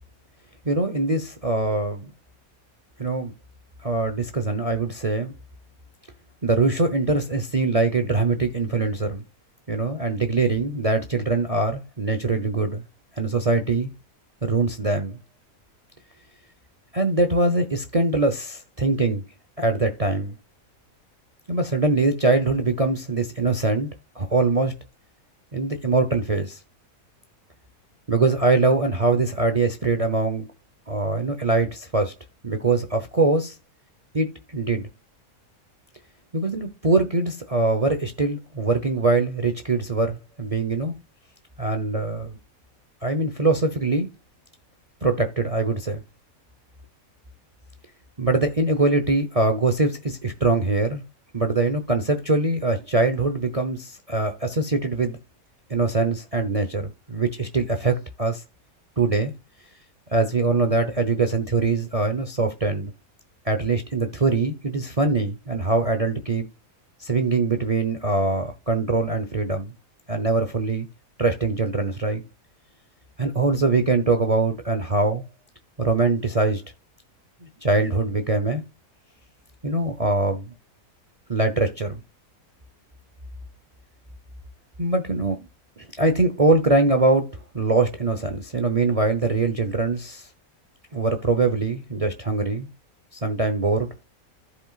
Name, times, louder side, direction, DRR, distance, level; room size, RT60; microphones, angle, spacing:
voice 1, 0.6-2.1 3.0-3.3 3.8-5.3 6.4-9.2 9.7-12.8 13.2-13.9 14.4-15.2 16.9-19.2 19.6-20.3 21.5-23.9 24.1-24.8 25.5-26.6 28.1-30.5 30.9-32.1 32.4-33.5 34.1-34.9 36.3-40.9 41.6-42.4 43.0-44.1 45.0-46.0 48.2-51.0 51.3-55.2 55.7-58.4 59.0-59.3 60.1-62.9 63.4-66.5 67.0-69.7 70.1-70.9 71.2-72.2 73.2-75.2 75.8-76.6 77.4-78.6 79.6-80.5 81.3-82.0 84.8-85.5 85.8-90.3 90.9-92.7 93.1-93.9, right 3 dB, 30° right, 0.8 m, -23 dB
15.0 x 5.3 x 2.4 m
omnidirectional pair, 1.5 m